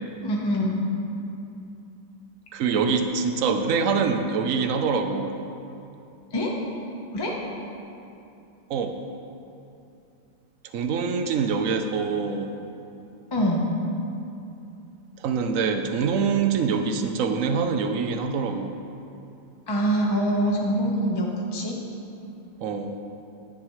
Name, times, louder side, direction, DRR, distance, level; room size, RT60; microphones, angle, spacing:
voice 1, 0.2-0.8 6.3-6.5 7.1-7.3 13.3-13.6 19.7-21.8, equal, 15° left, -2 dB, 0.9 m, -24 dB
voice 2, 2.5-5.3 8.7-9.0 10.7-12.5 15.2-18.7 22.6-22.9, right 5 dB, 55° right, 6 dB, 0.9 m, -25 dB
17.0 x 11.5 x 3.2 m, 2.7 s
omnidirectional pair, 2.1 m